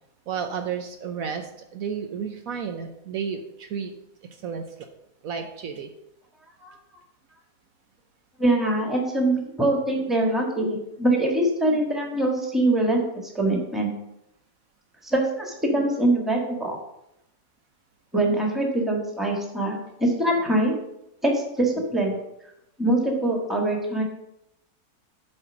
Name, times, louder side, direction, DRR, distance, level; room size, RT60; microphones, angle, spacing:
voice 1, 0.3-3.9 4.2-4.7 5.2-5.9, right 7 dB, 70° right, 5 dB, 1.1 m, -32 dB
voice 2, 8.4-13.9 15.0-16.8 18.1-20.7 21.2-22.1 22.8-24.0, right 1 dB, ahead, 0 dB, 1.4 m, -23 dB
7.7 x 4.5 x 6.1 m, 0.84 s
omnidirectional pair, 1.6 m